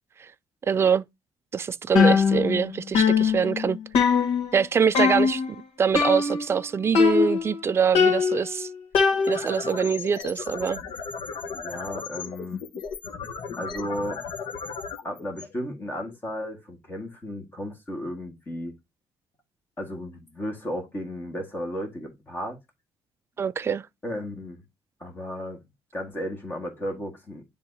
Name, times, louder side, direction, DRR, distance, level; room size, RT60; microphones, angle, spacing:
voice 1, 0.7-1.0 1.5-3.8 4.1-4.2 4.5-5.4 5.8-8.7 9.3-10.8 23.4-23.9, right 6 dB, 25° right, 0.3 m, -24 dB
sound 1, 1.9-2.7 2.9-4.6 4.9-5.5 5.9-6.6 6.9-7.6 7.9-9.6, left 5 dB, 75° left, 1.8 m, -22 dB
sound 2, 9.1-16.2, left 5 dB, 50° left, 1.0 m, -36 dB
voice 2, 11.5-12.6 13.6-14.2 15.0-18.8 19.8-22.6 24.0-24.6 25.0-25.6 25.9-27.4, equal, 20° left, 1.7 m, -34 dB
10.5 x 3.5 x 2.7 m
cardioid pair, 165°, 10 cm